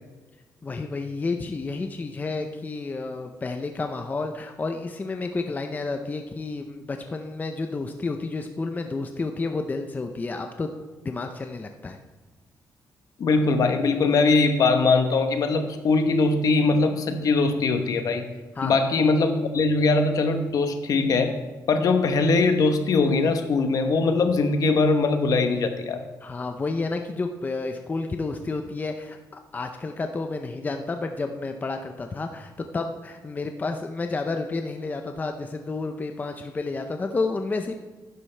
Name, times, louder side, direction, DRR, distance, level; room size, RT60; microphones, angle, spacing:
voice 1, 0.6-10.7 11.0-12.0 18.6-18.8 26.2-37.7, left 3 dB, 25° left, 5 dB, 0.6 m, -30 dB
voice 2, 13.2-18.2 18.6-21.3 21.7-26.0, left 3 dB, 60° left, 7 dB, 1.0 m, -21 dB
11.0 x 9.8 x 3.3 m, 1.3 s
cardioid pair, 125°, 7 cm